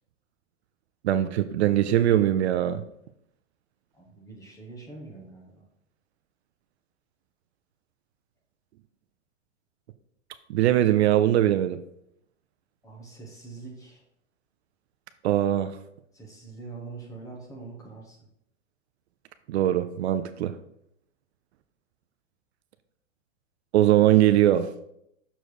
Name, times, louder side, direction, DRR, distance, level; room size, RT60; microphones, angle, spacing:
voice 1, 1.0-2.8 10.5-11.8 15.2-15.7 19.5-20.6 23.7-24.7, right 12 dB, 60° right, 0.5 m, -21 dB
voice 2, 3.9-5.7 12.8-14.0 16.1-18.2, right 3 dB, 10° left, 1.0 m, -43 dB
6.6 x 4.5 x 4.7 m
supercardioid pair, 165°, 38 cm